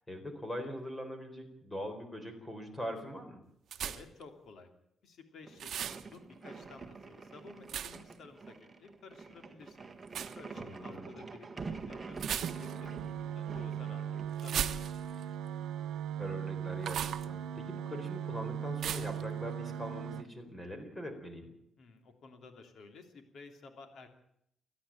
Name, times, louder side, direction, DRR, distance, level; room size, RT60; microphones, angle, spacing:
voice 1, 0.0-3.4 10.5-11.2 16.2-21.5, equal, 10° left, 7 dB, 4.1 m, -42 dB
sound 1, 3.7-4.2 5.6-6.0 7.7-8.1 10.1-10.4 12.2-12.9 14.4-15.2 16.8-17.3 18.8-19.2, right 9 dB, 60° right, 1.1 m, -37 dB
voice 2, 3.8-4.7 5.0-9.9 10.4-12.9 13.2-14.9 21.8-24.1, left 4 dB, 60° left, 6 dB, 3.0 m, -54 dB
sound 2, 5.4-14.9, right 4 dB, 20° right, 1.7 m, -47 dB
sound 3, 12.2-20.2, right 9 dB, 90° right, 1.0 m, -38 dB
29.0 x 10.0 x 9.0 m, 0.74 s
cardioid pair, 160°, 0 cm